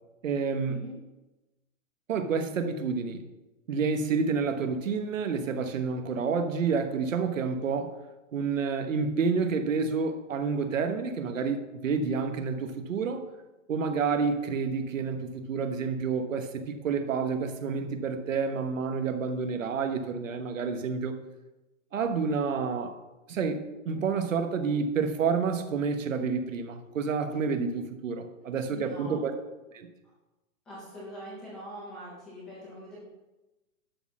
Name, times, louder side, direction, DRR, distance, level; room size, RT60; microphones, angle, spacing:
voice 1, 0.2-0.8 2.1-3.2 3.7-7.9 8.3-13.2 13.7-21.2 21.9-22.9 23.3-29.3 29.7-29.9, right 5 dB, 70° right, 7 dB, 1.1 m, -29 dB
voice 2, 28.6-29.2 30.7-33.0, equal, ahead, -8 dB, 0.5 m, -43 dB
11.5 x 4.2 x 6.1 m, 1.1 s
hypercardioid pair, 175°, 41 cm